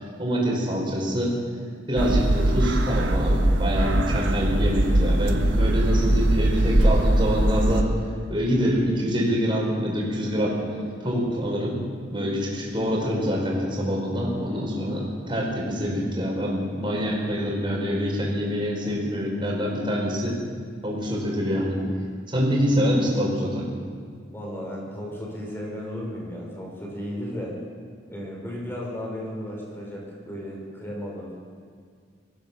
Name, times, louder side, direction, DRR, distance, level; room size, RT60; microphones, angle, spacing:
voice 1, 0.2-1.3 1.9-7.9 8.3-10.6 11.0-11.8 12.1-20.4 20.8-21.8 22.3-23.7, equal, 25° right, -2 dB, 5.4 m, -25 dB
sound 1, 2.0-7.8, right 1 dB, 80° right, 1.5 m, -21 dB
voice 2, 24.3-27.6 28.1-31.3, equal, 10° left, -2 dB, 5.9 m, -34 dB
24.0 x 15.0 x 7.2 m, 2.1 s
head